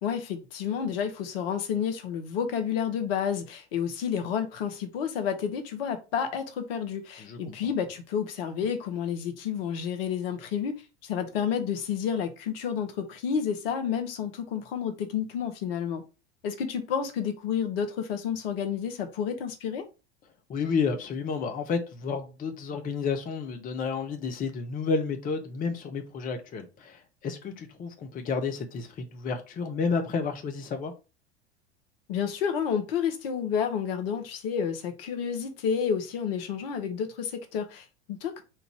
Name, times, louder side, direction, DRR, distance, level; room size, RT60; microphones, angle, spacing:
voice 1, 0.0-10.7 11.0-16.0 16.4-19.8 32.1-38.4, left 7 dB, 55° left, 1.0 m, -30 dB
voice 2, 7.2-7.5 20.5-30.9, left 5 dB, 25° left, 0.8 m, -31 dB
4.5 x 2.6 x 4.5 m
figure-of-eight pair, 85°, 34 cm